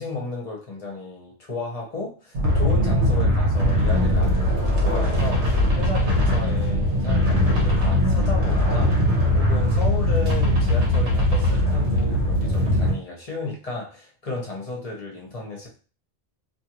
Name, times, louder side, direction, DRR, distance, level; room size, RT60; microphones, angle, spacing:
voice 1, 0.0-15.7, left 3 dB, 35° left, -2 dB, 0.9 m, -33 dB
sound 1, 2.3-12.9, left 1 dB, 80° right, 1.1 m, -20 dB
2.5 x 2.5 x 2.9 m, 0.37 s
omnidirectional pair, 1.1 m